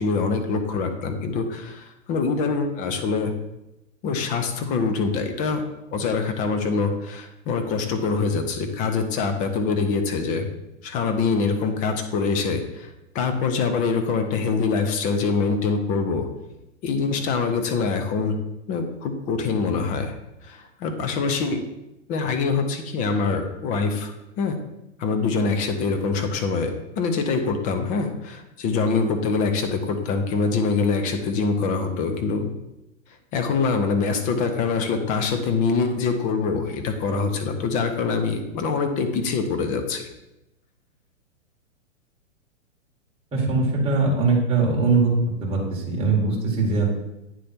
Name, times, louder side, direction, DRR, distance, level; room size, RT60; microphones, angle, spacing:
voice 1, 0.0-3.3 4.0-5.6 5.9-10.5 10.8-12.9 13.1-16.3 16.8-18.4 18.7-20.1 20.4-21.6 22.1-24.6 25.0-32.5 33.3-40.0, left 4 dB, 20° left, 6 dB, 0.6 m, -24 dB
voice 2, 43.3-45.1 45.4-46.9, right 4 dB, 15° right, -3 dB, 1.7 m, -21 dB
9.2 x 3.3 x 4.3 m, 0.90 s
hypercardioid pair, 135°, 38 cm